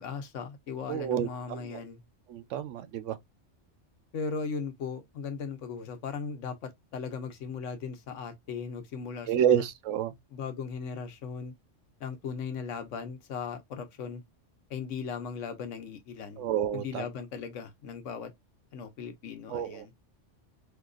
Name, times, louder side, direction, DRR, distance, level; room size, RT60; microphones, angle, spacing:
voice 1, 0.0-2.0 4.1-9.6 10.3-11.5 12.0-14.2 14.7-16.4 16.7-18.3 18.7-19.9, left 5 dB, 80° left, 1.1 m, -38 dB
voice 2, 0.9-1.8 2.3-3.2 9.3-10.1 16.4-17.0 19.5-19.9, right 9 dB, 80° right, 0.9 m, -29 dB
3.8 x 2.8 x 2.3 m
omnidirectional pair, 1.3 m